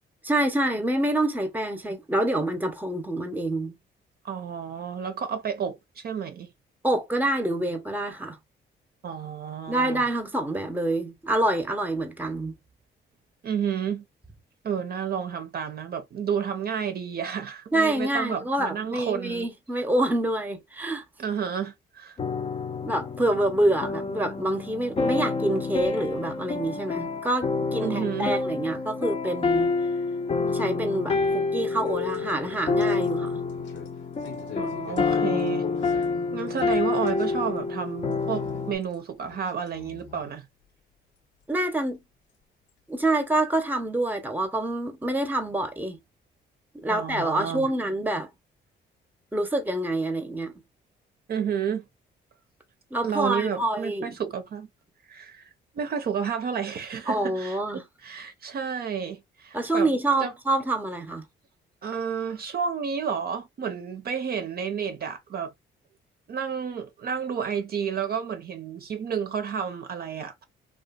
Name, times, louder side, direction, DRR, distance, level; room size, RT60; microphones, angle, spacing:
voice 1, 0.2-3.7 6.8-8.4 9.7-12.5 17.7-21.0 22.8-29.7 30.5-33.4 41.5-42.0 42.9-46.0 46.7-48.3 49.3-50.5 52.9-54.2 57.1-57.8 59.5-61.2, right 1 dB, 10° right, 0.7 m, -26 dB
voice 2, 4.2-6.5 9.0-10.0 13.4-14.0 14.6-19.5 21.2-22.2 27.8-28.4 34.6-36.1 36.3-40.5 46.9-47.7 51.3-51.8 53.0-54.7 55.1-59.9 60.2-60.3 61.8-65.5 66.3-70.4, right 7 dB, 50° right, 0.6 m, -31 dB
sound 1, 22.2-38.8, left 4 dB, 30° left, 0.5 m, -28 dB
sound 2, 31.9-37.6 37.9-39.0 39.2-40.4 41.4-41.5 42.7-42.8 43.4-43.5, left 8 dB, 70° left, 0.7 m, -45 dB
2.8 x 2.3 x 2.3 m
cardioid pair, 90°, 20 cm